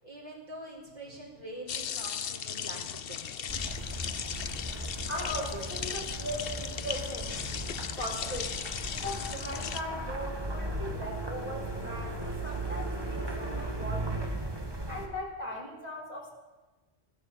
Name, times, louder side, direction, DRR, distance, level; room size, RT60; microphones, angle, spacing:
voice 1, 0.0-3.4, right 1 dB, 40° right, -4 dB, 4.4 m, -45 dB
sound 1, 1.7-9.8, left 8 dB, 65° left, 0.9 m, -37 dB
sound 2, 3.5-15.1, right 2 dB, 25° right, 1.9 m, -37 dB
voice 2, 5.1-7.4 8.0-14.3 14.9-16.3, equal, 40° left, -3 dB, 3.8 m, -39 dB
16.5 x 12.5 x 7.0 m, 1.2 s
omnidirectional pair, 1.1 m